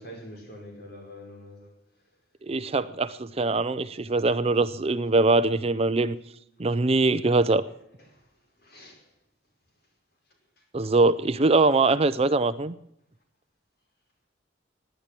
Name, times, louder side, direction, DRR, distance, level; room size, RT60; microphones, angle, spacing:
voice 1, 0.0-1.7 8.1-8.2 8.6-9.0, equal, 55° left, 5.2 m, -44 dB
voice 2, 2.4-6.2 6.6-7.7 10.7-12.7, right 3 dB, 30° right, 0.5 m, -22 dB
17.0 x 10.5 x 6.0 m
head